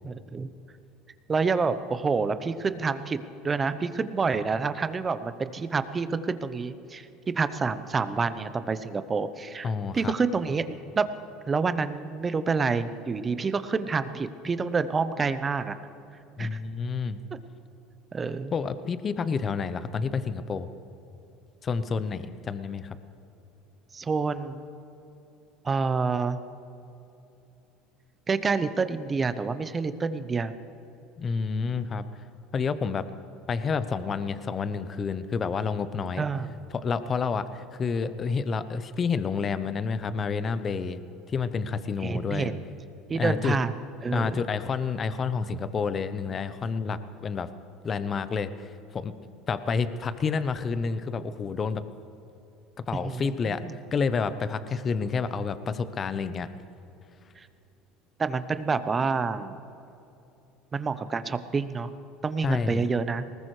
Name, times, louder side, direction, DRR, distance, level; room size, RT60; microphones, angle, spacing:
voice 1, 0.0-0.5 1.3-7.1 7.3-11.1 11.5-15.8 16.4-16.6 17.3-17.4 18.1-18.5 23.9-24.6 25.6-26.4 28.3-30.5 36.2-36.5 42.0-42.5 43.1-43.7 44.0-44.4 53.0-53.8 57.4-57.5 58.2-59.6 60.7-61.9 62.2-63.2, right 4 dB, 25° right, 12 dB, 0.8 m, -28 dB
voice 2, 9.6-10.1 16.4-17.2 18.5-20.7 21.6-23.0 31.2-32.0 32.5-33.0 33.5-36.2 36.7-41.0 41.3-42.5 43.1-43.6 44.1-47.5 47.8-49.1 49.5-51.8 52.9-53.6 53.9-56.5 62.4-62.9, left 5 dB, 35° left, 12 dB, 0.8 m, -29 dB
20.0 x 19.0 x 3.3 m, 2.9 s
supercardioid pair, 90°, 0 cm